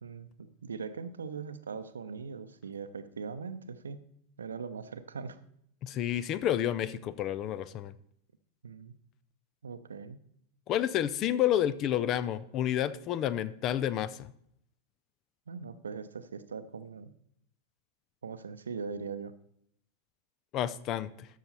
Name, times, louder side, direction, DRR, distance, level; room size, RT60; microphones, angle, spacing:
voice 1, 0.0-4.0 4.4-5.4 8.6-8.9 9.6-10.2 15.5-17.1 18.2-19.3, right 5 dB, 70° right, 12 dB, 0.7 m, -40 dB
voice 2, 5.8-7.9 10.7-14.3 20.5-21.3, left 11 dB, 35° left, 17 dB, 0.5 m, -30 dB
12.5 x 6.5 x 4.1 m, 0.71 s
figure-of-eight pair, 90°, 0 cm